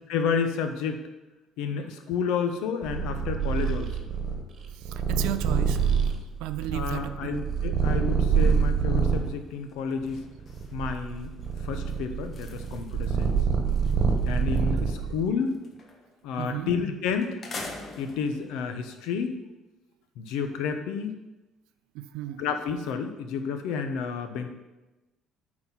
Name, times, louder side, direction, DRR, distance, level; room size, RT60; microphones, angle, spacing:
voice 1, 0.1-1.0 1.6-3.9 6.7-10.2 10.7-11.3 11.6-13.3 14.2-15.6 16.2-17.4 18.0-19.4 20.2-21.1 22.4-24.5, left 6 dB, 80° left, 7 dB, 0.9 m, -30 dB
Purr, 2.8-9.3 10.0-15.2, right 6 dB, 55° right, 1.2 m, -26 dB
voice 2, 4.7-5.8 6.4-7.4 16.4-16.7 21.9-22.4, right 14 dB, 85° right, 11 dB, 0.5 m, -34 dB
sound 1, 9.1-9.4 9.7-14.7 15.0-16.2 16.7-16.8 17.2-18.5, left 2 dB, 45° left, 1.4 m, -45 dB
8.8 x 4.3 x 5.7 m, 1.1 s
supercardioid pair, 80°, 0 cm